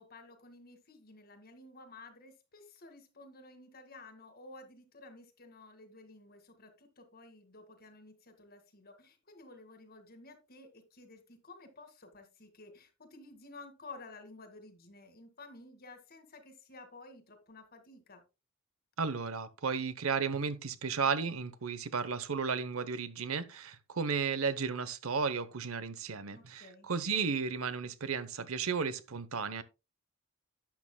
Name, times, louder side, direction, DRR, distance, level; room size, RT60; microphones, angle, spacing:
voice 1, 0.0-18.2 26.3-26.9, left 2 dB, 45° left, 2.0 m, -53 dB
voice 2, 19.0-29.6, right 5 dB, 75° right, 0.8 m, -34 dB
11.5 x 8.6 x 2.2 m
head